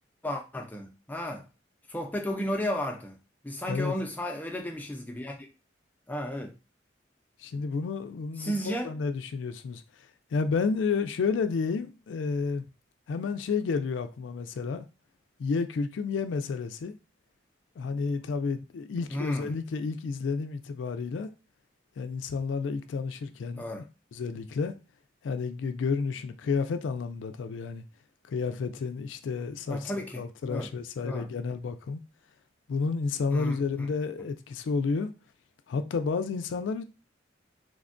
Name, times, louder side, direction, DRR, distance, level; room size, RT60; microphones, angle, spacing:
voice 1, 0.2-1.5 1.9-3.2 3.4-5.5 6.1-6.5 8.4-8.9 19.1-19.5 23.5-23.8 29.7-30.7 31.0-31.3 33.3-33.9, equal, 10° left, 0.4 m, -34 dB
voice 2, 7.4-9.8 10.3-12.6 13.1-14.9 15.4-16.9 17.8-21.3 22.0-23.6 24.1-24.7 25.2-27.8 28.3-32.0 32.7-35.1 35.7-36.8, left 5 dB, 80° left, 0.3 m, -31 dB
3.3 x 2.1 x 2.5 m
head